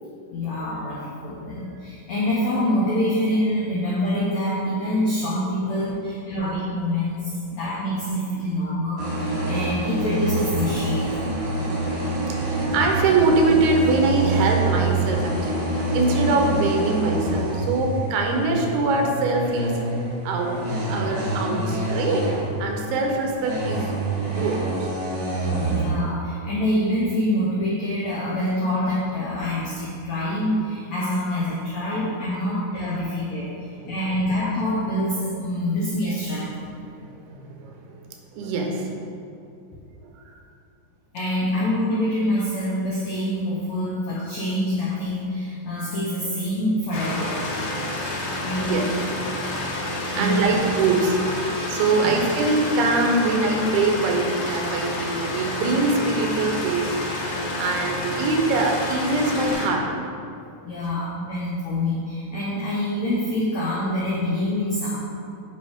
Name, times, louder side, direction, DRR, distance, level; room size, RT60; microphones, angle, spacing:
voice 1, 0.3-11.1 25.6-33.5 33.9-36.5 41.1-47.4 48.4-48.9 50.1-50.6 51.9-52.2 60.6-65.0, left 1 dB, 85° left, -7 dB, 1.5 m, -25 dB
sound 1, 9.0-22.9 23.2-25.9, right 2 dB, 60° right, 3.2 m, -26 dB
voice 2, 12.3-19.8 20.2-20.5 20.8-22.3 22.6-23.9 24.3-24.6 33.8-33.9 36.8-38.0 38.3-39.0 48.2-48.9 49.4-49.5 49.8-51.3 51.7-56.9 57.6-59.9, right 3 dB, 85° right, 1 dB, 2.8 m, -23 dB
sound 2, 46.9-59.7, left 1 dB, 65° left, 2.1 m, -29 dB
8.8 x 5.2 x 3.6 m, 2.5 s
omnidirectional pair, 4.4 m